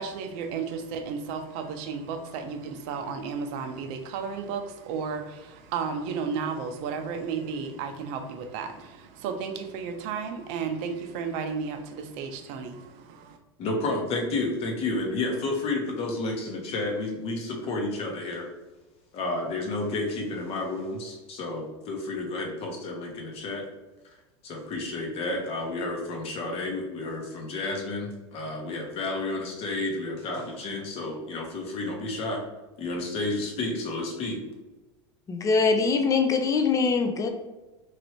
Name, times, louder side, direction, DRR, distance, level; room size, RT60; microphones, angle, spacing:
voice 1, 0.0-13.4, right 5 dB, 55° right, 6 dB, 0.5 m, -33 dB
voice 2, 13.6-18.5 19.1-23.7 24.4-32.4 32.8-34.4, left 2 dB, 45° left, 1 dB, 0.9 m, -31 dB
voice 3, 35.3-37.3, left 4 dB, 25° left, 5 dB, 0.5 m, -23 dB
3.2 x 2.6 x 3.0 m, 1.1 s
hypercardioid pair, 105°, 14 cm